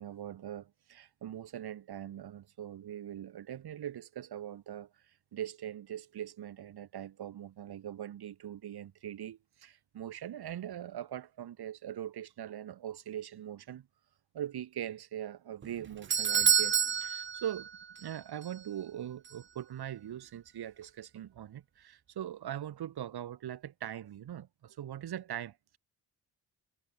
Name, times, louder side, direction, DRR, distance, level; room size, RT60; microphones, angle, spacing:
voice 1, 0.0-13.9 14.3-17.7 18.0-25.8, right 10 dB, 80° right, 5.4 m, -41 dB
Doorbell, 15.6-18.1 18.4-18.5 19.3-19.4, right 7 dB, 30° right, 0.6 m, -29 dB
wide cardioid pair, 135°, 38 cm